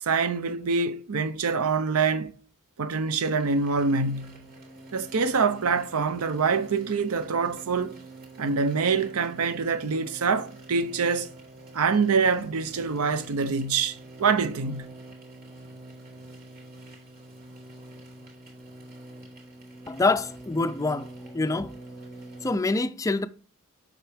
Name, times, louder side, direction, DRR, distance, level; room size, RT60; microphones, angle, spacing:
voice 1, 0.0-2.3 2.8-4.5 4.9-7.9 8.4-11.3 11.7-14.9, right 5 dB, 75° right, 0.6 m, -25 dB
sound 1, 3.4-22.6, right 2 dB, 45° right, 2.5 m, -46 dB
voice 2, 19.9-21.1 21.3-21.8 22.4-23.3, left 3 dB, 15° left, 0.4 m, -25 dB
7.3 x 5.8 x 3.5 m
head